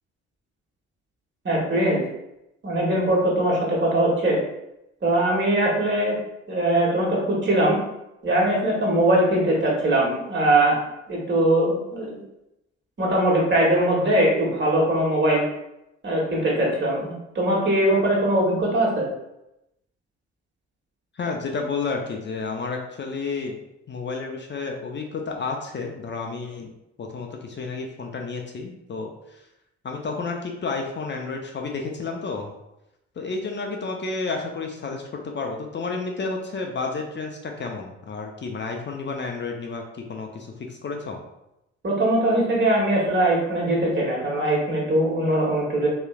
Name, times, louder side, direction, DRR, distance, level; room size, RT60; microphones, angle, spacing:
voice 1, 1.4-2.0 2.6-4.4 5.0-6.2 6.5-7.8 8.2-10.8 11.1-12.2 13.0-15.4 16.0-19.1 41.8-45.9, right 1 dB, 30° right, -3 dB, 1.4 m, -21 dB
voice 2, 21.1-23.6 23.9-26.7 27.0-29.4 29.8-32.5 33.2-41.2, left 4 dB, 30° left, 2 dB, 0.6 m, -31 dB
3.1 x 3.1 x 2.3 m, 0.87 s
hypercardioid pair, 45°, 35 cm